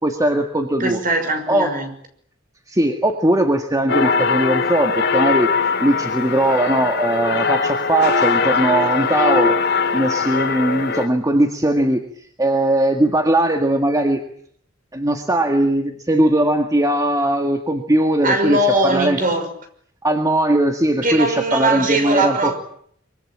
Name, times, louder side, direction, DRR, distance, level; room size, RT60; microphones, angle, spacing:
voice 1, 0.0-1.0 1.5-1.7 2.7-5.5 5.8-9.6 9.9-12.0 12.4-14.2 14.9-19.2 20.0-22.6, right 1 dB, 15° right, 5 dB, 1.9 m, -19 dB
voice 2, 0.8-1.9 18.2-19.5 21.0-22.6, right 2 dB, 45° right, 7 dB, 5.8 m, -20 dB
sound 1, 3.9-11.1, left 5 dB, 55° left, 3.1 m, -20 dB
24.5 x 24.0 x 8.8 m, 0.64 s
head